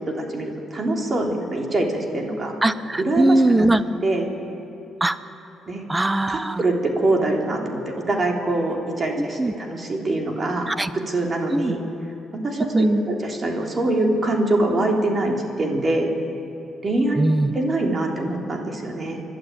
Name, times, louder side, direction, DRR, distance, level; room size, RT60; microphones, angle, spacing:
voice 1, 0.1-2.5 3.1-3.7 4.0-4.3 5.7-5.9 6.3-10.7 11.1-11.8 12.4-16.1 16.8-17.2 17.5-19.2, right 2 dB, 35° right, 1 dB, 3.6 m, -24 dB
voice 2, 2.6-3.8 5.0-5.2 5.9-6.6 9.2-9.5 10.7-10.9 11.5-11.7 12.7-13.0 17.2-17.5, right 1 dB, 15° right, 14 dB, 0.9 m, -20 dB
30.0 x 12.0 x 9.2 m, 2.8 s
cardioid pair, 90°, 0 cm